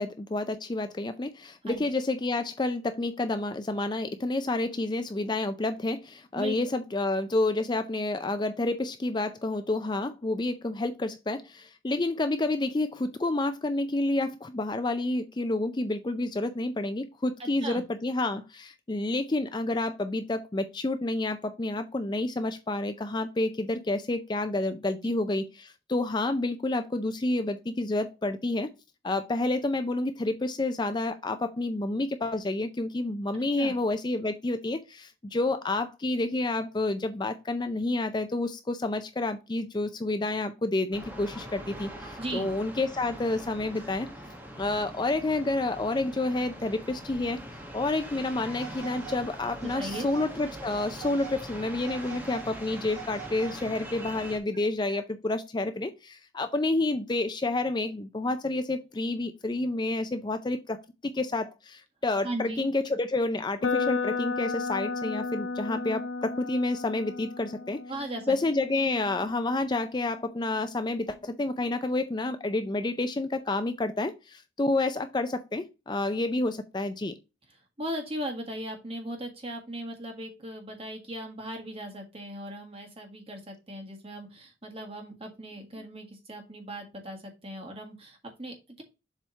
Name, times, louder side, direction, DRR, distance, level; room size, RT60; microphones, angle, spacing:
voice 1, 0.0-28.7 29.0-44.1 44.6-47.4 47.7-67.8 68.3-77.1, left 2 dB, 25° left, 9 dB, 0.4 m, -29 dB
voice 2, 6.3-6.8 17.4-17.8 25.0-25.1 33.6-33.7 42.2-42.5 49.6-50.1 54.9-55.0 62.2-62.7 67.9-68.3 77.8-88.8, right 1 dB, 30° right, 3 dB, 1.7 m, -38 dB
sound 1, 40.9-54.4, equal, 10° right, 1.1 m, -42 dB
Telephone, 48.5-49.2 49.6-50.3 50.7-51.4 51.8-53.8, right 11 dB, 60° right, 2.1 m, -44 dB
sound 2, 63.6-71.5, left 4 dB, 85° left, 0.5 m, -34 dB
7.3 x 3.5 x 4.0 m, 0.27 s
head